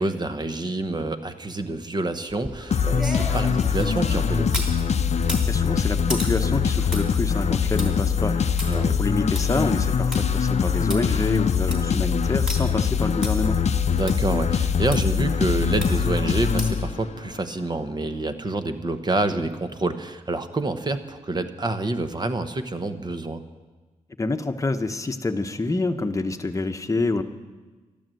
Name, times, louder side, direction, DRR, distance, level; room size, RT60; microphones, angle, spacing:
voice 1, 0.0-4.7 8.7-9.0 13.9-23.4, right 2 dB, 35° right, 9 dB, 1.1 m, -27 dB
sound 1, 2.3-4.8 5.2-10.2 10.6-10.7 10.9-11.0 11.4-11.9 12.5-12.6 13.2-13.3 14.1-14.2 14.9-15.0 15.8-16.1 16.6-16.9 17.3-17.4, equal, 5° right, 3.2 m, -35 dB
sound 2, 2.7-17.3, left 6 dB, 60° left, 0.6 m, -23 dB
voice 2, 5.5-13.6 24.2-27.2, left 2 dB, 25° left, 7 dB, 1.0 m, -27 dB
12.5 x 12.0 x 7.7 m, 1.3 s
cardioid pair, 85°, 13 cm